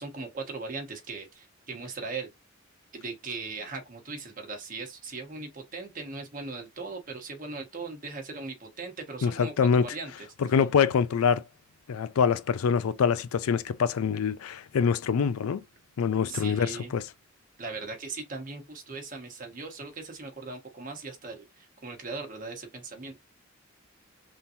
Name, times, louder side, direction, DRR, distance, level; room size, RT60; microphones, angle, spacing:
voice 1, 0.0-2.3 2.9-10.6 16.3-16.9 17.6-23.2, right 3 dB, 40° right, 1.0 m, -39 dB
voice 2, 9.2-9.8 10.5-11.4 11.9-15.6 16.0-17.0, left 6 dB, 85° left, 0.4 m, -25 dB
3.6 x 2.8 x 2.6 m
head